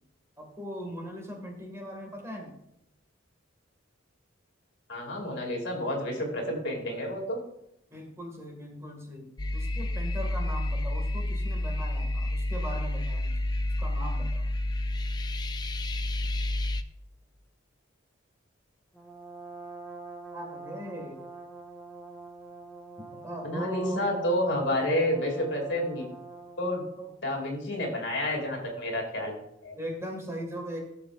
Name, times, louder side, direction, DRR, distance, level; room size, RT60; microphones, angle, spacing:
voice 1, 0.4-2.6 7.9-13.4 13.8-14.5 20.3-21.2 23.2-24.2 24.6-24.9 25.3-25.4 26.9-27.1 29.8-30.8, equal, 15° right, 1 dB, 2.0 m, -39 dB
voice 2, 4.9-7.4 23.4-26.0 26.6-26.8 27.2-29.3 29.6-29.8, left 1 dB, 70° left, 0 dB, 2.6 m, -29 dB
sound 1, 9.4-16.8, left 1 dB, 20° left, 0.4 m, -30 dB
Brass instrument, 18.9-26.7, right 3 dB, 5° left, 1.5 m, -45 dB
14.5 x 7.0 x 2.5 m, 0.79 s
head